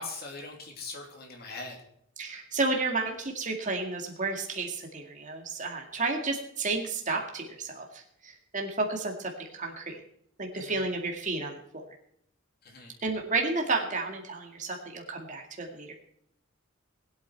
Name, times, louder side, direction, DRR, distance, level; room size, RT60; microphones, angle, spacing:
voice 1, 0.0-1.8 10.5-10.8 12.6-12.9, left 3 dB, 50° left, 1 dB, 2.7 m, -41 dB
voice 2, 2.2-10.0 10.4-11.8 13.0-15.9, right 3 dB, 40° right, 1 dB, 2.1 m, -32 dB
20.5 x 8.6 x 4.6 m, 0.70 s
head